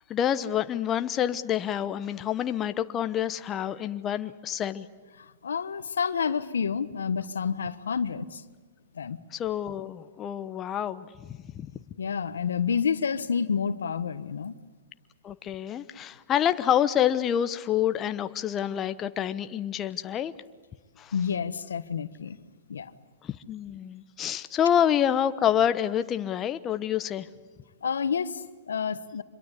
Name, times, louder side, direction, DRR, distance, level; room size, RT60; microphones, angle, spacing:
voice 1, 0.1-4.9 9.3-11.7 15.2-20.3 21.0-21.1 23.2-27.3, left 10 dB, 25° left, 11 dB, 1.0 m, -27 dB
voice 2, 5.2-8.4 8.9-9.2 12.0-14.5 21.1-22.4 22.7-22.9 27.8-29.2, left 6 dB, 85° left, 13 dB, 1.3 m, -29 dB
26.0 x 22.5 x 8.3 m, 1.4 s
hypercardioid pair, 120°, 0 cm